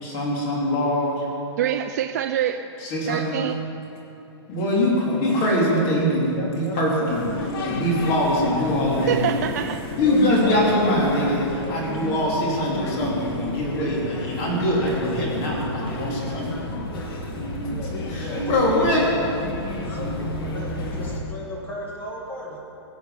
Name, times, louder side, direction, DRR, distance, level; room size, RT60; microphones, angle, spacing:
voice 1, 0.0-1.2 2.8-3.4 4.5-7.4 7.6-9.2 10.0-16.6 17.2-17.3 17.6-17.7 18.1-19.0, left 1 dB, 30° left, -4 dB, 3.6 m, -23 dB
voice 2, 1.6-2.7 3.1-3.5 9.1-9.8, right 10 dB, 35° right, 7 dB, 0.4 m, -25 dB
voice 3, 6.4-7.7 10.0-10.8 11.6-11.8 17.7-19.0 19.9-22.6, equal, 10° left, -2 dB, 2.2 m, -36 dB
sound 1, 7.1-21.2, left 1 dB, 55° left, 2.2 m, -31 dB
21.5 x 8.0 x 5.4 m, 3.0 s
hypercardioid pair, 165°, 15 cm